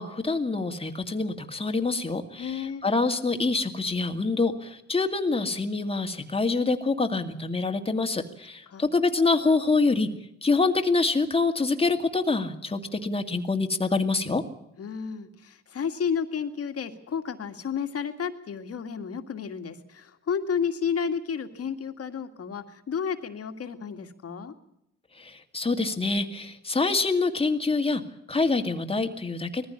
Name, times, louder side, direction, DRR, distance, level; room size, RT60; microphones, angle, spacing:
voice 1, 0.0-10.1 10.4-14.4 25.2-28.0 28.3-29.7, left 3 dB, 20° left, 5 dB, 2.1 m, -26 dB
voice 2, 2.4-2.8 8.7-8.9 14.8-24.5, left 6 dB, 50° left, 7 dB, 2.1 m, -31 dB
20.0 x 15.0 x 9.9 m, 0.78 s
cardioid pair, 90°, 30 cm